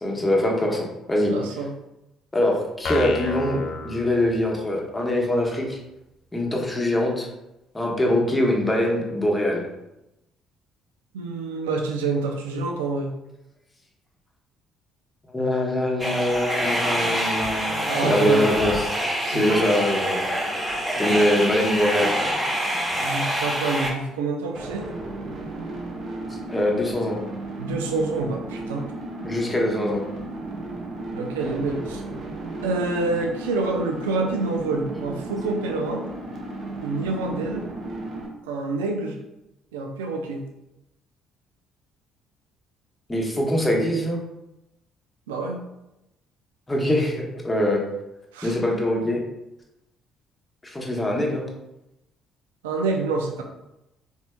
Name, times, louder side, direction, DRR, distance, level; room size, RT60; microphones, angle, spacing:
voice 1, 0.0-1.3 2.3-5.8 6.3-7.3 7.7-9.7 15.3-18.9 19.3-20.3 21.0-22.1 26.5-27.2 29.2-30.0 43.1-44.2 46.7-47.8 48.4-49.2 50.6-51.5, left 1 dB, 15° left, -1 dB, 1.0 m, -23 dB
voice 2, 1.3-1.7 11.1-13.1 17.9-18.4 19.3-19.7 23.0-24.9 27.6-28.9 31.1-32.0 32.6-36.0 36.8-37.7 38.5-39.2 39.7-40.5 45.3-45.6 48.3-48.6 52.6-53.4, right 3 dB, 80° right, 2 dB, 0.4 m, -27 dB
sound 1, 2.8-4.8, left 2 dB, 55° left, 0.5 m, -31 dB
sound 2, 16.0-23.9, equal, 20° right, 1.3 m, -26 dB
sound 3, 24.5-38.3, right 2 dB, 55° right, 0.7 m, -34 dB
4.1 x 2.6 x 2.2 m, 0.91 s
hypercardioid pair, 50°, 0 cm